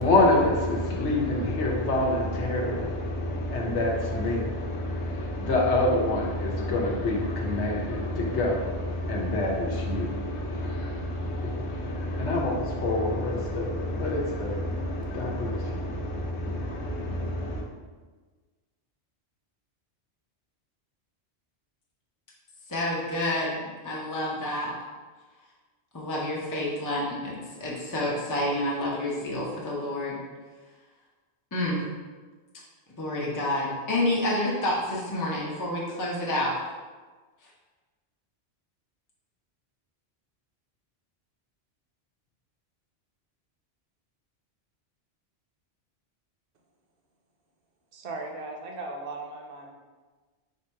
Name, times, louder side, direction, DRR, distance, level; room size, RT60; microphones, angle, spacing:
voice 1, 0.0-17.6, left 1 dB, 80° left, -1 dB, 1.1 m, -27 dB
voice 2, 22.7-24.7 25.9-30.2 31.5-31.8 33.0-36.6, left 1 dB, 20° left, -5 dB, 0.6 m, -29 dB
voice 3, 47.9-49.7, right 2 dB, 60° right, 1 dB, 0.8 m, -37 dB
3.4 x 2.8 x 4.4 m, 1.4 s
omnidirectional pair, 1.1 m